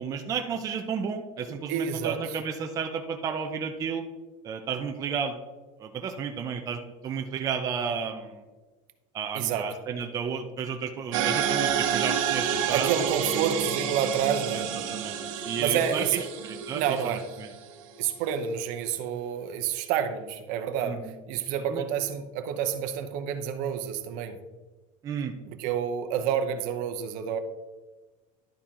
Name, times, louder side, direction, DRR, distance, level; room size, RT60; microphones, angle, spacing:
voice 1, 0.0-4.0 4.4-5.4 5.8-8.4 9.1-13.1 14.5-14.6 14.9-15.2 15.4-17.5 20.8-21.1 21.7-21.8 25.0-25.3, right 6 dB, 20° right, 4 dB, 0.5 m, -32 dB
voice 2, 1.5-2.2 9.3-9.7 12.7-14.7 15.6-16.3 16.7-17.2 18.0-21.0 21.3-24.4 25.5-27.4, right 8 dB, 50° right, 7 dB, 0.8 m, -29 dB
sound 1, 11.1-17.7, right 8 dB, 75° right, 1.0 m, -29 dB
11.5 x 4.4 x 3.7 m, 1.2 s
supercardioid pair, 155°, 17 cm